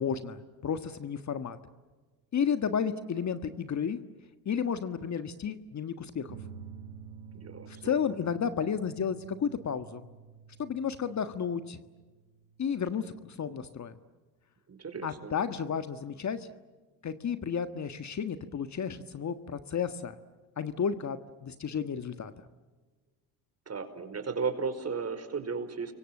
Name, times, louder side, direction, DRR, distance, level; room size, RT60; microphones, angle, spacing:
voice 1, 0.0-1.6 2.3-4.0 4.4-6.4 7.7-10.1 10.6-11.8 12.6-13.9 15.0-16.5 17.0-20.1 20.6-22.3, left 7 dB, 35° left, 11 dB, 1.6 m, -32 dB
sound 1, 6.3-13.2, right 6 dB, 55° right, 7.7 m, -50 dB
voice 2, 7.3-7.9 14.7-15.3 23.7-25.9, right 5 dB, 35° right, 9 dB, 5.0 m, -35 dB
30.0 x 24.0 x 7.7 m, 1.3 s
hypercardioid pair, 70°, 46 cm